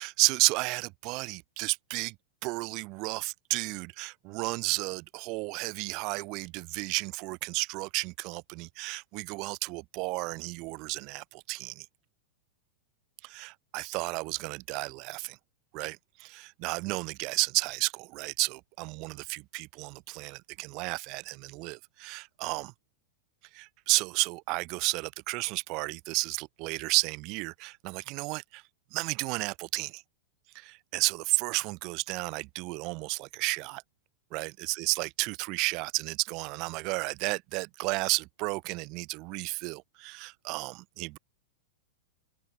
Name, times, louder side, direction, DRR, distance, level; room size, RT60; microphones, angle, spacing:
voice 1, 0.0-2.1 2.4-11.8 13.2-15.4 15.7-22.7 23.6-28.6 28.9-30.0 30.5-33.8 34.3-41.2, right 26 dB, 35° right, 1.2 m, -32 dB
open air
supercardioid pair, 160°, 0 cm